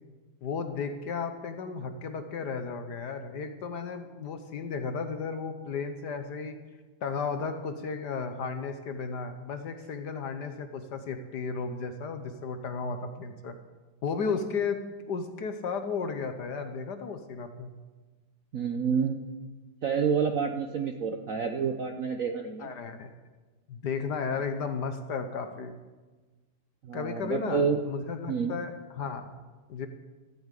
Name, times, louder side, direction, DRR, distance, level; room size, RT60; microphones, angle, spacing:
voice 1, 0.4-6.5 7.0-13.5 14.0-17.7 22.6-23.1 23.7-25.8 26.9-29.3 29.7-29.9, left 5 dB, 60° left, 8 dB, 1.3 m, -34 dB
voice 2, 18.5-19.2 19.8-22.7 26.8-27.8 28.3-28.5, right 6 dB, 60° right, 5 dB, 0.9 m, -28 dB
14.0 x 8.5 x 8.3 m, 1.3 s
omnidirectional pair, 2.3 m